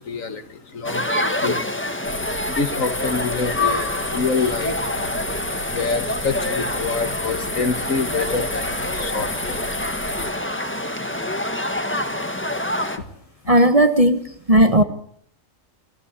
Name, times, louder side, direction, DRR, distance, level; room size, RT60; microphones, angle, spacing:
voice 1, 0.0-4.8 5.2-10.7 13.0-13.1, left 4 dB, 70° left, 10 dB, 2.1 m, -27 dB
sound 1, 0.8-13.0, left 1 dB, 10° left, 1.5 m, -26 dB
sound 2, 2.0-10.3, left 2 dB, 85° left, 5.7 m, -32 dB
voice 2, 13.5-14.2 14.5-14.8, right 1 dB, 25° right, 9 dB, 1.4 m, -14 dB
27.5 x 14.5 x 8.4 m, 0.65 s
omnidirectional pair, 1.5 m